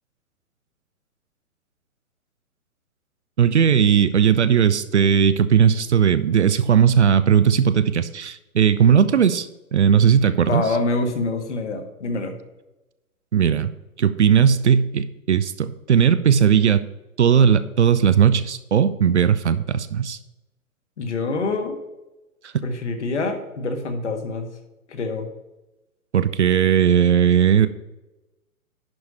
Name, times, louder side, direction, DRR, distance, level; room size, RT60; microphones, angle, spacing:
voice 1, 3.4-10.6 13.3-13.7 14.0-16.8 17.2-20.2 26.1-27.7, right 8 dB, 55° right, 13 dB, 0.6 m, -17 dB
voice 2, 10.4-12.3 21.0-21.8 22.6-24.5 24.9-25.3, left 3 dB, 55° left, 5 dB, 1.7 m, -26 dB
11.0 x 4.7 x 5.4 m, 1.0 s
figure-of-eight pair, 125°, 43 cm